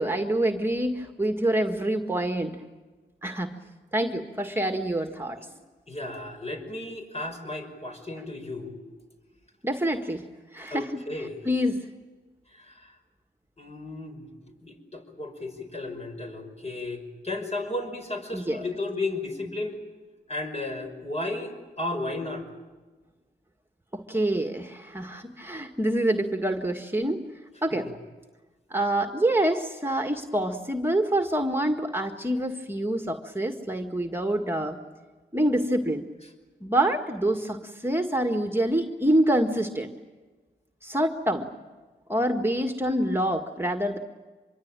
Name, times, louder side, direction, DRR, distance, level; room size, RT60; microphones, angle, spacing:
voice 1, 0.0-2.6 3.2-3.5 3.9-5.4 9.6-10.2 10.5-11.9 18.3-18.6 23.9-27.3 27.6-27.9 28.7-34.8 35.3-36.1 36.6-39.9 40.8-41.5 42.1-44.0, right 1 dB, 10° right, 5 dB, 1.8 m, -26 dB
voice 2, 5.9-8.8 10.7-11.4 12.5-13.0 13.6-19.8 20.3-22.5 27.7-27.9, left 2 dB, 35° left, 4 dB, 5.8 m, -34 dB
25.5 x 22.5 x 9.0 m, 1.3 s
cardioid pair, 50°, 18 cm